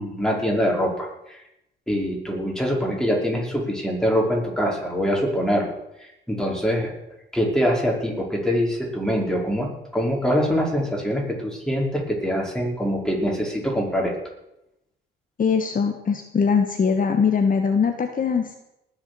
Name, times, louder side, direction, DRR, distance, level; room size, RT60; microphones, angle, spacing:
voice 1, 0.0-1.4 1.9-5.8 6.3-6.9 7.3-9.7 9.9-14.1, equal, 5° left, -1 dB, 5.0 m, -24 dB
voice 2, 15.4-18.6, left 6 dB, 45° left, 5 dB, 1.4 m, -21 dB
19.5 x 7.3 x 7.0 m, 0.87 s
cardioid pair, 90°, 20 cm